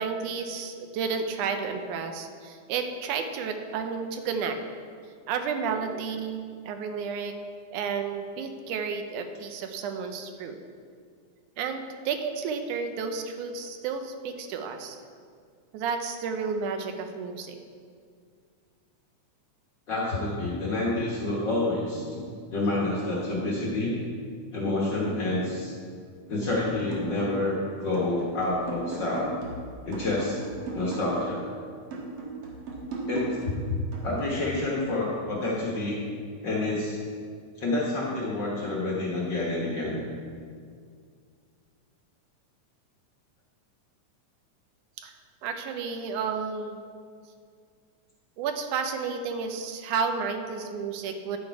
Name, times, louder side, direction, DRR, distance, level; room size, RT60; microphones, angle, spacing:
voice 1, 0.0-4.6 5.3-7.4 7.7-10.6 11.6-15.0 15.7-17.6 45.0-45.1 45.4-46.8 48.4-51.4, right 5 dB, 85° right, 6 dB, 2.2 m, -31 dB
voice 2, 19.9-22.2 22.5-23.9 24.5-25.7 26.3-29.3 29.9-30.4 30.7-31.4 33.1-36.0 36.4-37.0 37.6-40.0, left 2 dB, 50° left, -5 dB, 1.4 m, -28 dB
sound 1, 26.4-27.6 27.9-31.5 31.9-34.4, right 3 dB, 55° right, 2.2 m, -37 dB
10.5 x 6.7 x 4.6 m, 2.1 s
omnidirectional pair, 3.5 m